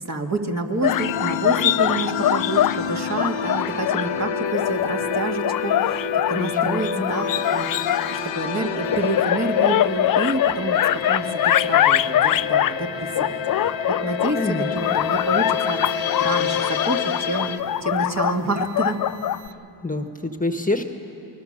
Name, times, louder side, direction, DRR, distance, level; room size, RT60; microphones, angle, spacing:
voice 1, 0.0-10.8 11.1-17.5 17.8-19.0, right 2 dB, 35° right, 1 dB, 2.3 m, -28 dB
sound 1, 0.8-2.8 3.2-4.1 4.5-8.2 8.9-12.8 13.1-14.3 14.8-19.5, left 11 dB, 50° left, 0.5 m, -22 dB
sound 2, 0.9-17.6, left 8 dB, 80° left, 1.2 m, -28 dB
sound 3, 0.9-19.9, right 11 dB, 65° right, 1.0 m, -41 dB
voice 2, 6.3-7.1 14.3-15.0 19.8-20.8, left 2 dB, 15° left, 6 dB, 1.5 m, -27 dB
29.5 x 20.5 x 6.8 m, 3.0 s
cardioid pair, 65°, 45 cm